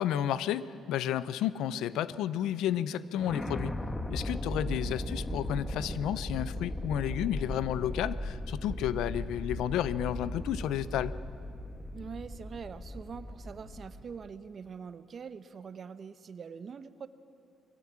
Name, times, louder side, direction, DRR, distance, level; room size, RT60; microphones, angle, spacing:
voice 1, 0.0-3.7 4.1-11.1, left 11 dB, 90° left, 16 dB, 0.5 m, -32 dB
sound 1, 3.2-14.3, left 1 dB, 20° left, 1.3 m, -37 dB
voice 2, 11.9-17.1, right 6 dB, 50° right, 12 dB, 0.8 m, -44 dB
21.5 x 16.0 x 7.4 m, 2.4 s
cardioid pair, 90°, 0 cm